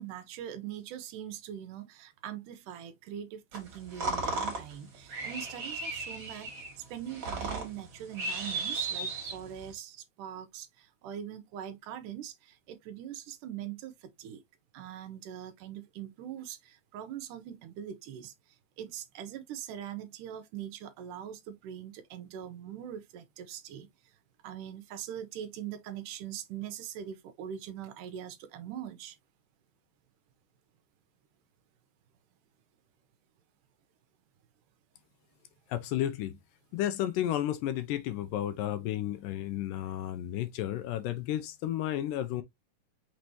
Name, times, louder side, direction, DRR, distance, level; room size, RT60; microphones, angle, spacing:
voice 1, 0.0-6.6 6.9-14.4 14.7-18.3 18.8-23.9 24.4-29.2, right 10 dB, 75° right, 2.1 m, -42 dB
sound 1, 3.5-9.7, right 3 dB, 40° right, 2.3 m, -36 dB
voice 2, 35.7-36.4 36.7-42.4, left 12 dB, 80° left, 2.2 m, -32 dB
6.1 x 3.3 x 2.7 m
omnidirectional pair, 4.0 m